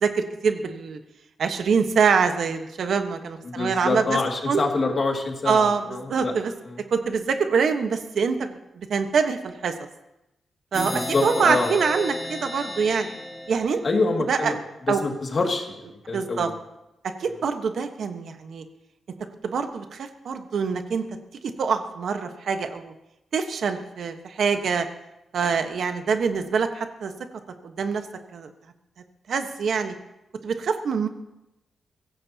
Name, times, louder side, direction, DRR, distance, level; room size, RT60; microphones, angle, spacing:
voice 1, 0.0-1.0 1.4-4.2 4.5-4.6 5.5-6.5 6.9-9.7 10.7-13.1 13.5-13.8 14.3-14.5 14.9-15.0 16.1-16.5 17.2-18.6 19.4-21.1 21.6-22.9 23.3-24.9 25.3-27.1 27.6-28.0 28.3-28.5 29.3-29.9 30.4-31.1, right 5 dB, 65° right, 6 dB, 1.2 m, -24 dB
voice 2, 3.4-6.3 6.6-6.8 10.8-11.7 13.8-14.6 14.9-15.8 16.1-16.5, left 3 dB, 40° left, 2 dB, 2.2 m, -26 dB
sound 1, 10.7-14.3, left 1 dB, 15° left, 1.8 m, -34 dB
23.5 x 16.0 x 2.9 m, 0.92 s
wide cardioid pair, 145°, 0 cm